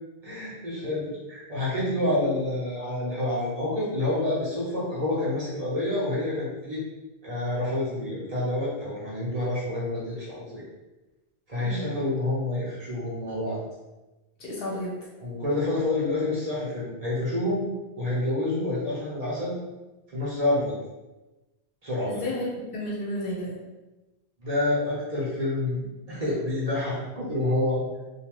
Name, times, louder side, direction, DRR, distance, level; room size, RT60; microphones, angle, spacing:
voice 1, 0.2-6.8 7.2-10.6 11.5-13.6 15.2-17.7 18.0-19.6 20.1-20.8 21.8-22.2 24.4-27.8, left 1 dB, 40° right, -7 dB, 0.8 m, -28 dB
voice 2, 11.5-11.9 14.4-14.9 22.1-23.5, left 1 dB, 60° left, -5 dB, 1.0 m, -32 dB
2.7 x 2.4 x 3.0 m, 1.1 s
omnidirectional pair, 1.1 m